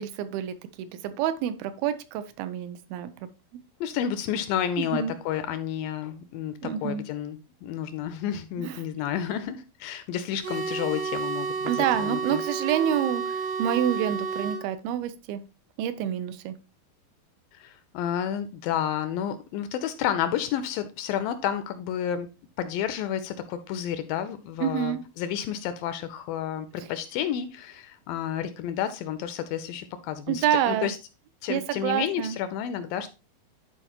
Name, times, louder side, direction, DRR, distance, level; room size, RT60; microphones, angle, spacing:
voice 1, 0.0-3.1 4.8-5.1 6.6-7.1 8.6-8.8 11.7-15.4 15.8-16.6 24.6-25.0 30.3-30.9 31.5-32.4, right 10 dB, 80° right, 11 dB, 2.4 m, -28 dB
voice 2, 3.8-12.4 17.5-22.3 22.6-31.0 31.4-33.1, left 9 dB, 80° left, 11 dB, 2.1 m, -31 dB
sound 1, 10.4-14.6, right 5 dB, 55° right, 1.8 m, -31 dB
11.0 x 4.6 x 2.9 m, 0.30 s
omnidirectional pair, 4.4 m